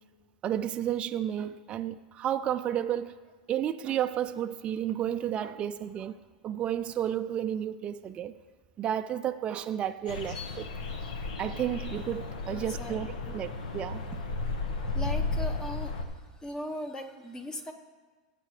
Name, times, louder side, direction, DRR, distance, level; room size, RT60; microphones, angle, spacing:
voice 1, 0.4-3.2 3.5-8.3 8.8-10.7 11.4-14.2, right 10 dB, 25° right, 0.4 m, -32 dB
sound 1, 10.1-16.0, left 3 dB, 75° left, 1.2 m, -34 dB
voice 2, 12.5-13.0 13.2-13.4 14.9-16.0 16.4-17.7, equal, 15° left, 1.1 m, -38 dB
18.0 x 7.6 x 3.2 m
hypercardioid pair, 120°, 4 cm